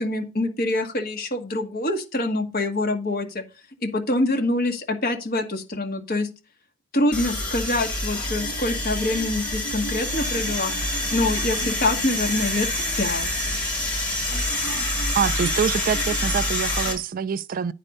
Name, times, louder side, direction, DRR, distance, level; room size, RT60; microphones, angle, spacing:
voice 1, 0.0-3.4 3.8-6.3 6.9-10.7 11.1-12.7 13.0-13.5, left 2 dB, 50° left, 1.4 m, -25 dB
sound 1, 7.1-16.9, left 1 dB, 5° left, 4.3 m, -26 dB
voice 2, 15.1-17.7, right 7 dB, 45° right, 0.3 m, -25 dB
9.9 x 4.2 x 5.4 m
head